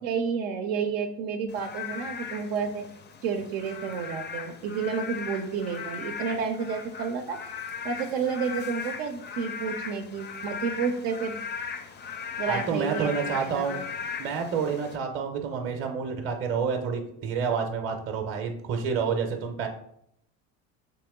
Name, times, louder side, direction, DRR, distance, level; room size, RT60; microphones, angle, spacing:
voice 1, 0.0-2.8 3.2-7.4 7.8-11.4 12.4-13.8, right 6 dB, 80° right, 5 dB, 0.6 m, -30 dB
Frog / Rain, 1.5-15.0, left 6 dB, 25° left, 0.4 m, -38 dB
voice 2, 12.5-13.8 14.2-19.7, right 6 dB, 30° right, 3 dB, 0.6 m, -29 dB
3.0 x 2.9 x 3.5 m, 0.72 s
hypercardioid pair, 80°, 43 cm